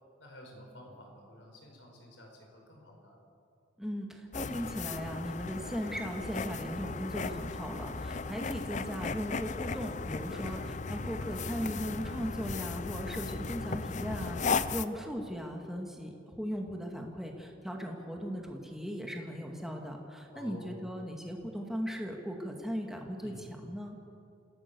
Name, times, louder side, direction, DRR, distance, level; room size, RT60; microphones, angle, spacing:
voice 1, 0.2-3.2 10.3-10.7 14.6-15.1 20.3-20.7 23.2-23.5, equal, 75° left, 1 dB, 5.3 m, -51 dB
voice 2, 3.8-10.6 10.9-24.0, equal, ahead, 1 dB, 2.2 m, -38 dB
sound 1, 4.3-14.9, left 4 dB, 40° left, 0.6 m, -36 dB
27.0 x 17.0 x 7.0 m, 2.6 s
head